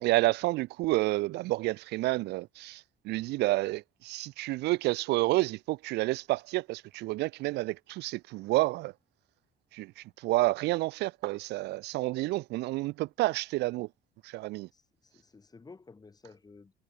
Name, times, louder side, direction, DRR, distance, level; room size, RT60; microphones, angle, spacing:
voice 1, 0.0-8.9 9.7-13.9 14.3-14.7, right 19 dB, 85° right, 0.7 m, -29 dB
voice 2, 14.7-16.7, left 4 dB, 20° left, 4.9 m, -53 dB
cardioid pair, 110°, 17 cm